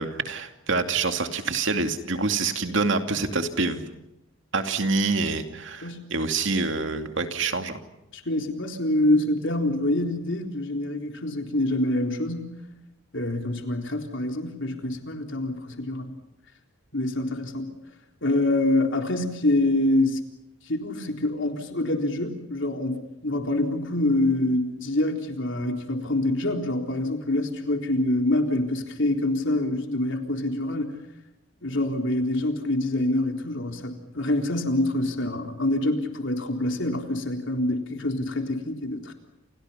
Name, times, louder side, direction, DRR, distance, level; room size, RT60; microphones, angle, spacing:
voice 1, 0.0-3.8 4.5-7.8, right 3 dB, 60° right, 6 dB, 2.6 m, -26 dB
voice 2, 8.1-12.6 13.1-16.2 16.9-17.7 18.2-20.2 20.7-31.0 31.6-39.1, left 1 dB, 60° left, 4 dB, 3.9 m, -26 dB
30.0 x 29.0 x 5.8 m, 0.88 s
head